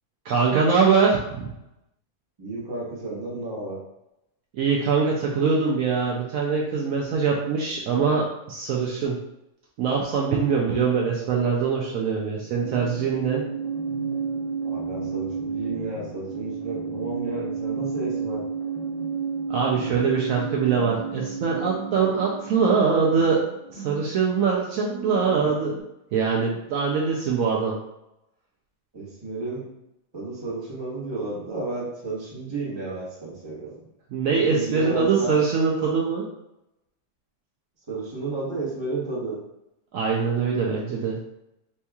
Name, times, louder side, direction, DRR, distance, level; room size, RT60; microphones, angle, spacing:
voice 1, 0.2-1.5 4.5-9.2 9.8-13.4 19.5-23.4 23.7-25.7 26.1-27.8 34.1-36.3 39.9-41.2, right 5 dB, 70° right, -2 dB, 0.9 m, -23 dB
voice 2, 2.4-3.8 14.6-18.4 25.4-25.5 28.9-29.6 30.1-33.8 34.5-35.3 37.9-39.4, right 2 dB, 20° right, -6 dB, 0.9 m, -32 dB
sound 1, 12.4-25.8, right 5 dB, 80° left, 1.8 m, -32 dB
4.4 x 2.8 x 2.3 m, 0.88 s
omnidirectional pair, 1.6 m